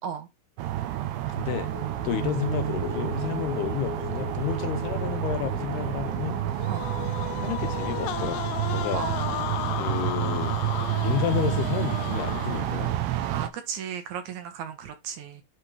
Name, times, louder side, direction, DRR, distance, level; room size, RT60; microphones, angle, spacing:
sound 1, 0.6-13.5, right 13 dB, 75° right, 2.9 m, -29 dB
voice 1, 1.3-1.7 2.0-6.4 7.4-9.0 9.7-10.6 11.0-13.0, left 11 dB, 75° left, 2.8 m, -31 dB
sound 2, 1.4-12.0 12.3-12.5, left 6 dB, 50° left, 1.1 m, -42 dB
sound 3, 6.6-12.9, left 15 dB, 90° left, 2.9 m, -34 dB
voice 2, 8.9-9.6 13.2-15.4, right 8 dB, 60° right, 2.3 m, -35 dB
9.0 x 3.7 x 5.0 m
omnidirectional pair, 5.0 m